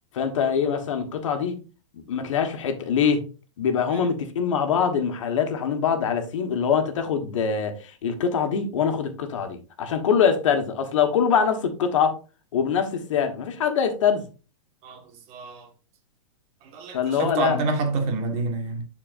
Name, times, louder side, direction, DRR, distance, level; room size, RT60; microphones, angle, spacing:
voice 1, 0.1-1.6 1.9-3.2 3.6-12.2 12.5-14.3 16.9-17.6, left 7 dB, 75° left, 1.5 m, -24 dB
voice 2, 14.8-15.7 16.6-18.8, right 3 dB, 40° right, 1.7 m, -28 dB
11.5 x 4.4 x 2.6 m
hypercardioid pair, 135°, 16 cm